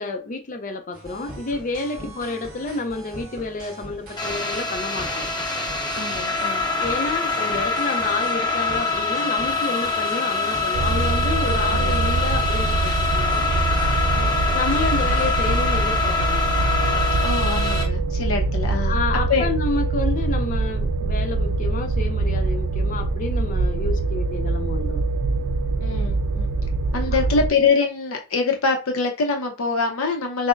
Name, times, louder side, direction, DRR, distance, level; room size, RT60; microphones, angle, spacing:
voice 1, 0.0-5.3 6.8-13.5 14.5-16.5 18.7-25.0, left 3 dB, 35° left, 0.4 m, -29 dB
sound 1, 0.9-15.6, right 1 dB, 40° right, 1.7 m, -41 dB
sound 2, 4.2-17.8, left 4 dB, 20° left, 0.9 m, -24 dB
voice 2, 5.9-6.6 11.6-12.0 14.1-14.4 17.2-19.0 19.3-19.5 25.8-26.5 26.9-30.5, left 4 dB, 75° left, 0.7 m, -24 dB
sound 3, 10.7-27.5, right 3 dB, 85° right, 0.4 m, -23 dB
6.1 x 2.0 x 2.4 m
head